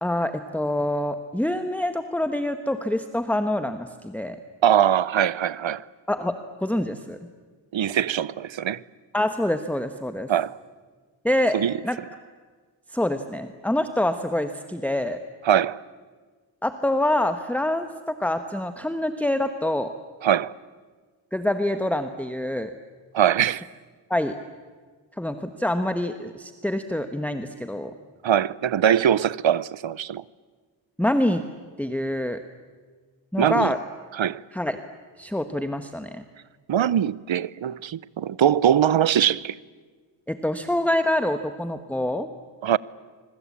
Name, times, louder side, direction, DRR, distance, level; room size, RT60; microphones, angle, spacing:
voice 1, 0.0-4.4 6.1-7.2 9.1-10.3 11.2-11.6 11.8-12.0 12.9-15.2 16.6-19.9 21.3-22.7 24.1-24.4 25.2-27.9 31.0-31.5 31.8-32.4 33.3-33.8 34.5-34.8 35.2-36.2 40.3-42.3, left 1 dB, 5° left, 1.1 m, -26 dB
voice 2, 4.6-5.9 7.7-8.8 10.3-10.6 11.5-11.7 15.4-15.8 20.2-20.5 23.1-23.7 28.2-30.2 33.4-33.7 34.1-34.4 36.7-39.6 42.6-42.8, right 10 dB, 75° right, 0.7 m, -22 dB
25.5 x 23.5 x 8.5 m
wide cardioid pair, 80°, 46 cm